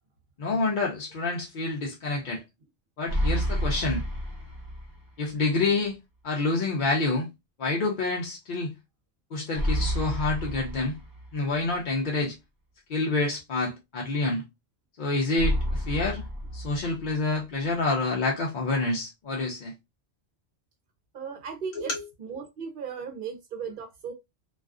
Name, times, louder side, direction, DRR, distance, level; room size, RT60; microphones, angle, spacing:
voice 1, 0.4-2.4 3.0-4.0 5.2-6.0 6.2-7.3 7.6-8.7 9.3-11.0 11.3-12.4 12.9-14.4 15.0-16.2 16.5-19.7 21.7-22.0, left 3 dB, 55° left, 0.6 m, -27 dB
sound 1, 3.1-5.1 5.4-5.5 9.6-11.6 15.4-17.4, equal, 25° left, 0.8 m, -30 dB
voice 2, 21.1-21.9 22.2-24.1, right 6 dB, 55° right, 0.8 m, -36 dB
2.4 x 2.3 x 2.3 m
omnidirectional pair, 1.1 m